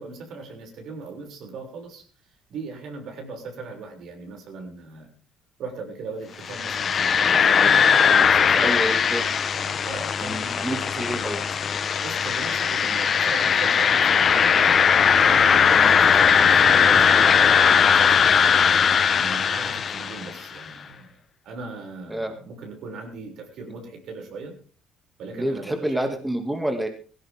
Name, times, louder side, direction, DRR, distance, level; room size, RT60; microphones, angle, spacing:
voice 1, 0.0-2.0 2.5-5.1 5.6-8.7 9.5-11.2 12.0-14.8 15.2-18.7 19.1-24.5 25.2-26.1, right 4 dB, 65° right, 2 dB, 6.8 m, -38 dB
sound 1, 6.4-20.4, left 7 dB, 40° left, 1.2 m, -19 dB
voice 2, 8.6-9.3 10.2-11.4 15.7-15.9 22.1-22.3 25.3-26.9, right 1 dB, 5° right, 5 dB, 2.4 m, -28 dB
18.5 x 16.5 x 3.7 m, 0.38 s
cardioid pair, 110°, 0 cm